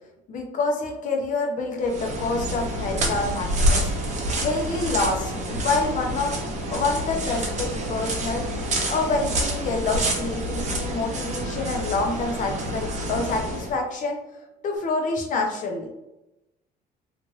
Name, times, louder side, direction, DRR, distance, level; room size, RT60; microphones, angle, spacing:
voice 1, 0.3-3.8 4.4-6.4 6.7-8.4 8.9-14.2 14.6-15.9, left 3 dB, 50° left, 2 dB, 0.8 m, -27 dB
sound 1, 1.8-13.7, right 1 dB, 45° right, 0.8 m, -27 dB
2.9 x 2.5 x 3.1 m, 0.91 s
cardioid pair, 110°, 17 cm